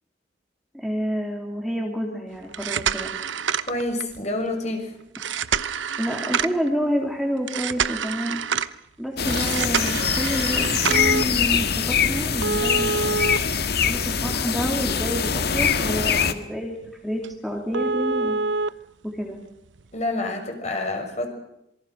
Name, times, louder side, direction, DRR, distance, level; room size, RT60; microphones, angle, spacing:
voice 1, 0.7-3.1 5.3-5.4 6.0-8.4 9.0-16.8 17.0-18.4 19.0-19.4, equal, ahead, 0 dB, 3.3 m, -29 dB
sound 1, 2.4-4.2 5.1-6.7 7.5-8.7 9.3-11.2 12.4-14.3 14.7-14.8 15.4-15.5 15.9-16.1 16.3-16.4 16.8-16.9 17.2-17.3 17.7-18.7 19.8-19.9, right 5 dB, 85° right, 1.0 m, -26 dB
voice 2, 3.7-4.9 19.9-21.3, left 2 dB, 40° left, 4 dB, 6.4 m, -28 dB
sound 2, 9.2-16.3, left 7 dB, 60° left, 1.7 m, -23 dB
27.0 x 23.5 x 6.5 m, 0.81 s
head